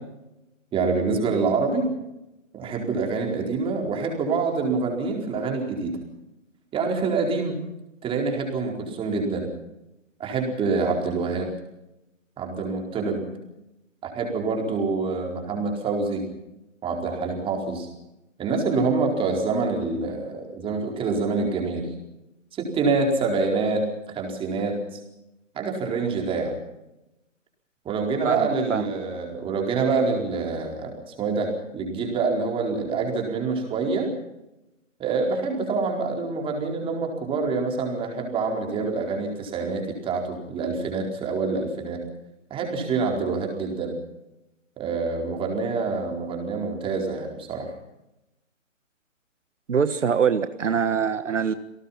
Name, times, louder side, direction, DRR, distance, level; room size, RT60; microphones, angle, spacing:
voice 1, 0.7-1.9 2.5-6.0 6.7-7.6 8.0-9.5 10.2-11.5 12.4-13.3 14.0-16.3 16.8-17.9 18.4-21.9 22.6-25.0 25.5-26.6 27.8-34.1 35.0-42.0 42.5-43.9 44.8-47.7, right 4 dB, 15° right, 2 dB, 4.4 m, -26 dB
voice 2, 28.2-28.9 49.7-51.5, right 6 dB, 70° right, 11 dB, 1.5 m, -23 dB
28.0 x 18.5 x 5.9 m, 0.94 s
figure-of-eight pair, 140°, 39 cm